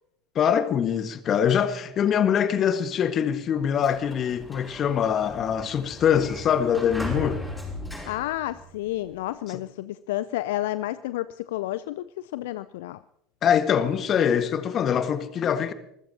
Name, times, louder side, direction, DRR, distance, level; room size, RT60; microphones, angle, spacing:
voice 1, 0.3-7.4 13.4-15.7, left 8 dB, 40° left, 1.6 m, -23 dB
Sliding door, 3.5-9.2, left 2 dB, 5° left, 6.6 m, -37 dB
voice 2, 8.1-13.0, left 15 dB, 70° left, 0.5 m, -31 dB
26.5 x 15.5 x 2.9 m
hypercardioid pair, 75°, 0 cm